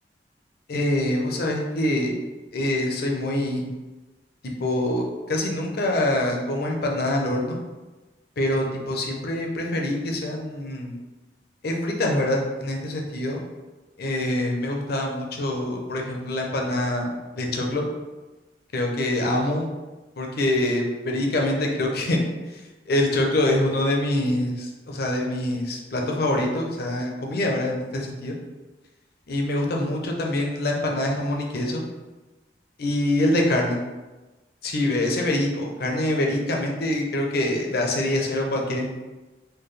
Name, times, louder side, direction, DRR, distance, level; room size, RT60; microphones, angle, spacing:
voice 1, 0.7-2.1 2.5-3.6 4.4-7.6 8.4-10.9 11.6-13.4 14.0-17.8 18.7-19.7 20.2-22.2 22.5-22.6 22.9-28.4 29.3-31.8 32.8-33.8 34.6-38.9, left 1 dB, 60° left, 0 dB, 0.6 m, -25 dB
4.4 x 2.3 x 3.2 m, 1.2 s
head